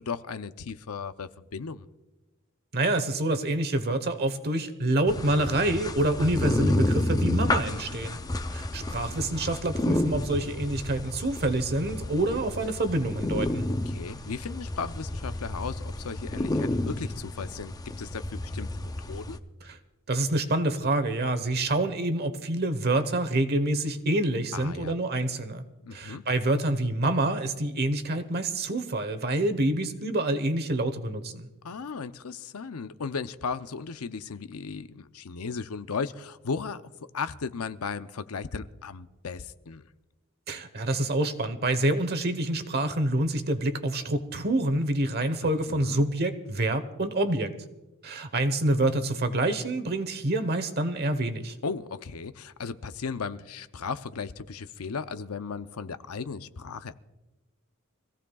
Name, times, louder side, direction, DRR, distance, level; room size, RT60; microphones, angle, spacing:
voice 1, 0.0-1.9 7.6-7.8 8.1-8.2 13.9-19.4 24.5-24.9 25.8-26.2 31.6-36.8 37.1-39.8 45.4-46.0 51.6-57.0, left 5 dB, 90° left, 11 dB, 0.7 m, -36 dB
voice 2, 2.7-8.2 8.5-13.7 19.6-19.8 20.1-25.6 25.9-31.5 40.5-47.5 48.0-51.5, right 1 dB, 50° right, 10 dB, 1.1 m, -27 dB
sound 1, 5.1-19.4, left 1 dB, 15° left, 0.5 m, -30 dB
25.0 x 16.0 x 2.4 m, 1.1 s
head